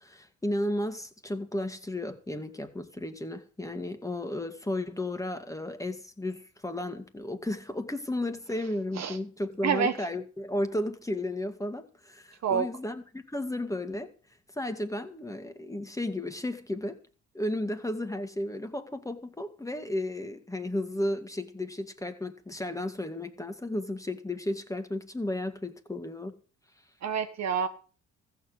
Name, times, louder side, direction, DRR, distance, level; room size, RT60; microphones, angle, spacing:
voice 1, 0.0-14.1 14.5-17.0 17.3-26.3, left 1 dB, 10° left, 1.9 m, -33 dB
voice 2, 9.6-9.9 12.4-12.7 27.0-27.7, right 7 dB, 60° right, 1.4 m, -27 dB
14.5 x 7.3 x 7.9 m
cardioid pair, 90°, 30 cm